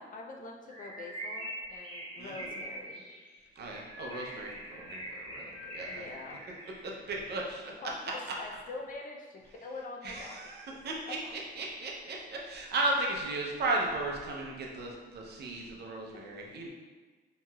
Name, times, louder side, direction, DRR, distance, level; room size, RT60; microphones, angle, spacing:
voice 1, 0.0-3.0 5.8-6.4 7.8-10.4 10.6-10.8 11.1-11.3 15.4-15.7 16.1-16.2, left 3 dB, 45° left, 0 dB, 0.5 m, -44 dB
Bird, 0.7-7.0, right 1 dB, 25° right, 0.9 m, -43 dB
voice 2, 2.2-2.5 3.6-6.0 7.1-7.7 10.0-11.2 11.6-16.7, right 2 dB, 55° right, -1 dB, 0.6 m, -35 dB
3.0 x 2.8 x 2.3 m, 1.4 s
cardioid pair, 90°, 20 cm